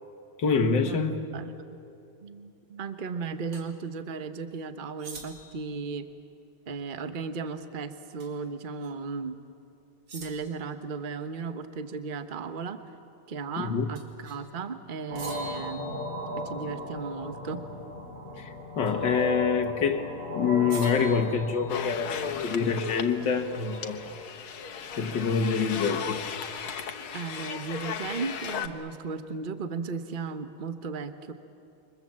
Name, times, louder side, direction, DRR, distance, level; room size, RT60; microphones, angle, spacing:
voice 1, 0.4-1.2 13.6-13.9 18.4-20.1 20.3-24.0 24.9-26.5, left 5 dB, 60° left, 4 dB, 2.2 m, -26 dB
voice 2, 1.3-1.8 2.2-6.1 6.7-9.4 10.1-12.8 13.3-16.0 16.4-17.7 27.1-31.3, right 5 dB, 35° right, 8 dB, 1.0 m, -36 dB
sound 1, 3.5-3.7 5.0-5.7 8.2-8.5 8.8-8.9 10.1-10.7 14.0-14.5 15.2-16.5 18.9-19.2 20.7-22.1, right 2 dB, 85° right, 3.8 m, -46 dB
sound 2, 15.1-24.1, left 1 dB, 40° left, 6.2 m, -37 dB
sound 3, 21.7-28.7, left 7 dB, 80° left, 2.1 m, -36 dB
28.5 x 25.0 x 7.6 m, 2.7 s
omnidirectional pair, 2.3 m